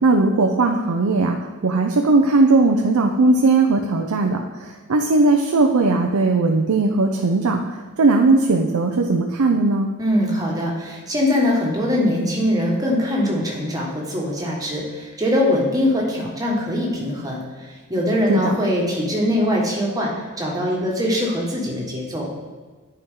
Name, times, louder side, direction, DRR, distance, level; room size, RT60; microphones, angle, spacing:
voice 1, 0.0-9.9 18.3-18.5, right 3 dB, 80° right, 3 dB, 0.5 m, -18 dB
voice 2, 10.0-20.1 20.4-22.3, left 1 dB, 15° right, -3 dB, 1.5 m, -22 dB
10.5 x 4.7 x 3.7 m, 1.4 s
head